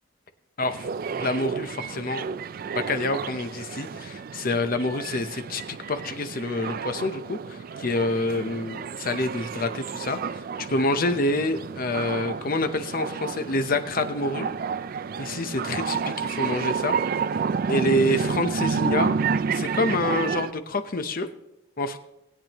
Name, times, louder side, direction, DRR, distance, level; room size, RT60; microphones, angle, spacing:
sound 1, 0.6-20.5, right 5 dB, 45° right, 0.3 m, -30 dB
voice 1, 1.1-2.3 2.7-14.5 15.2-17.0 17.7-19.1 19.5-21.3 21.8-22.0, left 2 dB, 45° left, 9 dB, 0.8 m, -27 dB
20.0 x 8.9 x 3.0 m, 0.88 s
head